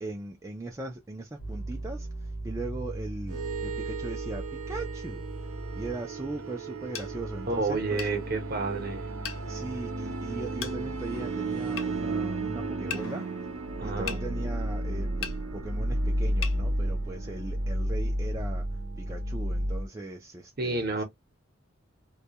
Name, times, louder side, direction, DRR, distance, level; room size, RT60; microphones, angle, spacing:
voice 1, 0.0-5.2 5.8-8.1 9.4-13.3 13.8-18.6 19.0-21.0, right 2 dB, 15° right, 0.3 m, -39 dB
sound 1, 1.4-18.8, right 1 dB, 90° left, 0.9 m, -41 dB
sound 2, 3.3-19.9, right 1 dB, 80° right, 0.6 m, -33 dB
sound 3, 6.9-7.1 8.0-8.2 9.2-9.4 10.6-10.8 11.8-11.9 12.9-13.1 14.1-14.2 15.2-15.4 16.4-16.6, left 8 dB, 65° left, 0.5 m, -35 dB
voice 2, 7.5-9.0 13.8-14.2 20.6-21.0, right 3 dB, 45° right, 0.8 m, -30 dB
2.2 x 2.2 x 2.7 m
head